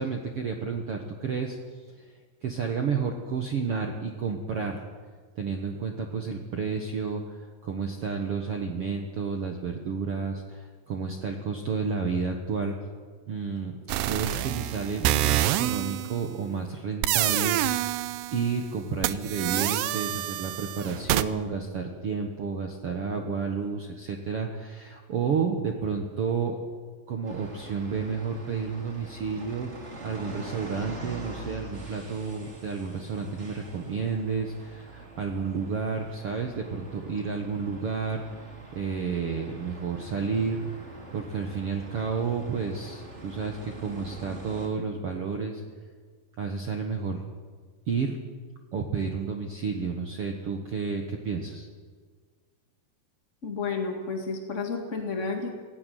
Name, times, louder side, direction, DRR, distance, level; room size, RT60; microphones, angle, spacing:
voice 1, 0.0-1.6 2.0-2.1 2.4-4.8 5.4-12.7 13.3-13.7 14.0-18.0 18.3-26.6 27.1-38.2 38.7-40.6 41.1-45.6 46.4-47.2 47.9-48.2 48.7-51.7, right 5 dB, 65° right, 3 dB, 1.4 m, -31 dB
sound 1, 13.9-16.2 17.0-18.6 19.0-21.2, right 15 dB, 90° right, 2.8 m, -27 dB
sound 2, 27.3-44.7, right 2 dB, 20° right, 2.3 m, -44 dB
voice 2, 53.4-55.5, left 4 dB, 45° left, 2 dB, 0.9 m, -31 dB
17.0 x 17.0 x 9.3 m, 1.5 s
omnidirectional pair, 4.7 m